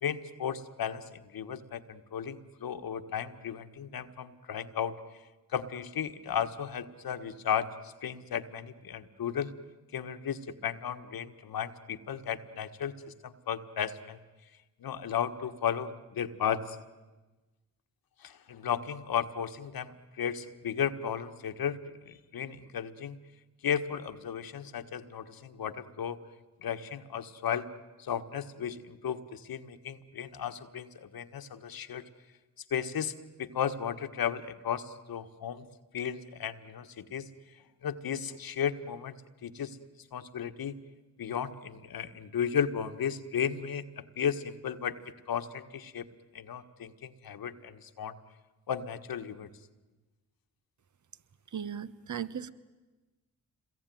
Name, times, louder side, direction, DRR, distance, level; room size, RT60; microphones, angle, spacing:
voice 1, 0.0-4.9 5.5-9.5 9.9-14.2 14.8-16.8 18.2-21.8 22.1-23.2 23.6-26.2 26.6-27.7 28.0-32.0 32.7-35.7 35.9-37.3 37.8-39.1 39.4-39.8 40.1-40.8 41.2-43.8 44.2-45.0 45.3-46.0 46.3-48.2 48.7-49.5, left 8 dB, 70° left, 9 dB, 1.6 m, -34 dB
voice 2, 51.5-52.5, right 8 dB, 50° right, 15 dB, 1.3 m, -37 dB
26.5 x 22.0 x 9.4 m, 1.2 s
supercardioid pair, 45°, 37 cm